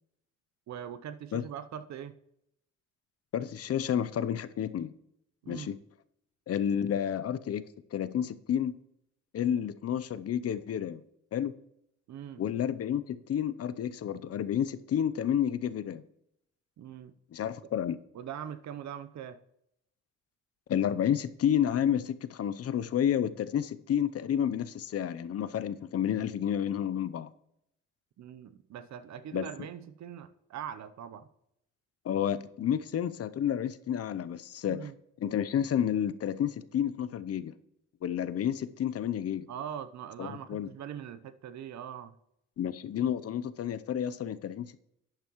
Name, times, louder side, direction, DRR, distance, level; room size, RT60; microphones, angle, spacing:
voice 1, 0.7-2.1 5.4-5.7 12.1-12.4 16.8-17.1 18.1-19.4 28.2-31.3 34.7-34.9 39.5-42.1, right 9 dB, 65° right, 0.8 m, -42 dB
voice 2, 3.3-4.9 5.5-5.8 6.5-7.6 7.9-8.7 9.3-11.0 11.3-11.6 12.4-16.0 17.3-18.0 20.7-27.3 29.3-29.5 32.0-34.9 35.2-37.6 38.0-39.5 40.2-40.7 42.6-44.8, left 9 dB, 50° left, 0.7 m, -30 dB
11.5 x 8.9 x 3.1 m
cardioid pair, 90°, 30 cm